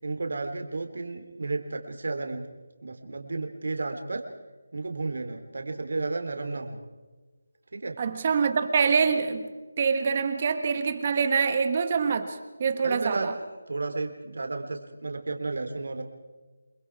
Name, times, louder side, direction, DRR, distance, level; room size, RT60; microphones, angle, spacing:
voice 1, 0.0-2.5 2.8-4.2 4.7-6.8 7.7-7.9 12.8-13.3 13.7-16.0, right 3 dB, 65° right, 5 dB, 3.5 m, -32 dB
voice 2, 8.0-9.5 9.8-13.3, right 5 dB, 30° right, 8 dB, 1.4 m, -25 dB
29.0 x 21.5 x 4.8 m, 1.3 s
figure-of-eight pair, 165°, 0 cm